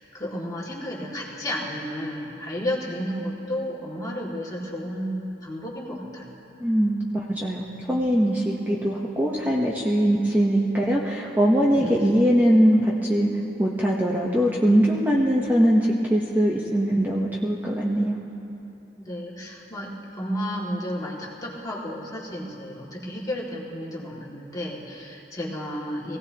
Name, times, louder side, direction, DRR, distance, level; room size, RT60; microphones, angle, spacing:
voice 1, 0.1-6.3 11.7-12.1 19.0-26.2, equal, 20° left, -5 dB, 2.2 m, -32 dB
voice 2, 6.6-13.3 13.6-18.2, equal, 10° right, -4 dB, 0.9 m, -21 dB
23.5 x 17.0 x 2.9 m, 2.9 s
head